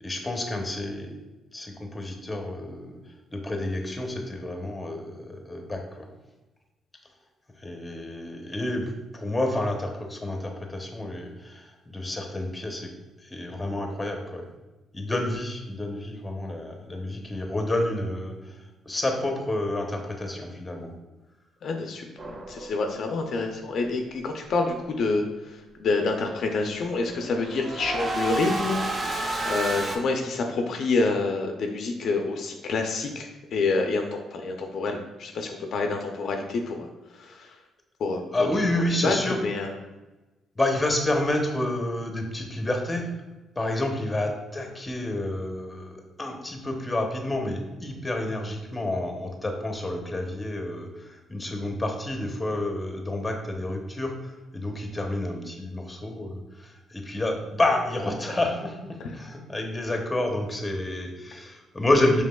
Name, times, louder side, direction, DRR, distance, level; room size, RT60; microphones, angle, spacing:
voice 1, 0.0-1.1 1.5-3.0 3.3-6.1 7.6-12.9 13.2-14.4 14.9-18.6 18.9-20.9 38.3-39.4 40.6-43.1 43.6-62.2, left 1 dB, 15° left, 3 dB, 0.7 m, -29 dB
voice 2, 21.6-36.9 37.2-37.6 38.0-38.2 38.9-39.7 59.0-59.2, left 3 dB, 65° left, 3 dB, 0.4 m, -28 dB
sound 1, 22.2-23.1 26.8-30.0, right 2 dB, 35° right, 0.6 m, -31 dB
5.1 x 3.3 x 2.3 m, 1.1 s
cardioid pair, 90°, 0 cm